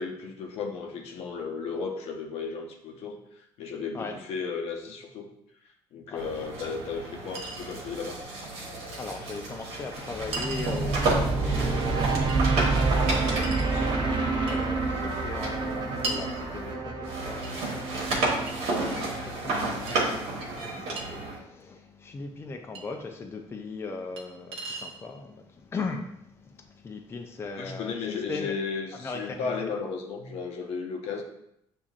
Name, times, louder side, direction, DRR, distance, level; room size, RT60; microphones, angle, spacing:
voice 1, 0.0-5.3 5.6-8.2 14.5-14.6 27.6-31.2, left 5 dB, 75° left, 3 dB, 0.7 m, -34 dB
sound 1, 6.2-16.7 17.0-21.4, right 2 dB, 80° right, 1.2 m, -32 dB
Chink clink, 6.4-6.5 7.3-7.7 8.9-9.0 10.3-10.9 12.3-12.4 13.4-13.7 14.5-14.7 16.0-16.3 17.4-17.6 18.5-19.2 19.9-20.0 21.0-21.1 22.7-22.8 24.2-24.3 24.5-25.0, right 3 dB, 65° right, 0.9 m, -37 dB
voice 2, 9.0-28.0 28.3-28.5 29.0-29.7, left 3 dB, 25° left, 3 dB, 0.4 m, -39 dB
sound 2, 10.1-19.2, right 3 dB, 45° right, 0.8 m, -28 dB
7.1 x 2.5 x 2.4 m, 0.78 s
cardioid pair, 110°, 11 cm